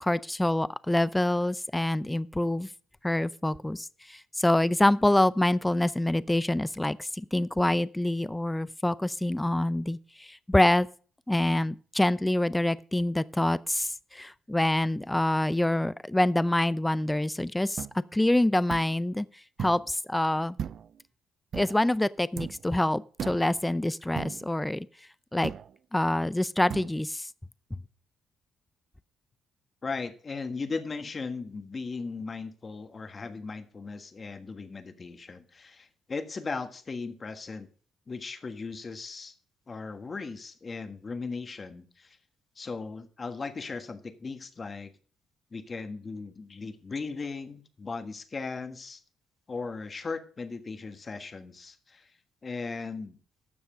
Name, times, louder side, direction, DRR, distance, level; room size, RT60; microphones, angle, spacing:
voice 1, 0.0-2.7 3.0-10.9 11.3-17.9 18.1-19.3 19.6-20.6 21.5-24.9 25.3-25.5 25.9-27.3, left 1 dB, 10° left, 0.5 m, -26 dB
sound 1, 17.8-17.9 18.7-18.9 19.6-19.9 20.6-21.0 21.5-21.8 22.4-22.7 23.2-23.5 24.2-24.5 25.4-25.7 26.7-26.9, right 8 dB, 60° right, 0.4 m, -37 dB
voice 2, 29.8-37.7 38.1-39.3 39.7-42.2 42.5-44.9 45.5-49.0 49.5-52.1 52.4-53.2, left 4 dB, 35° left, 1.5 m, -37 dB
12.5 x 7.1 x 5.0 m
cardioid pair, 90°, 0 cm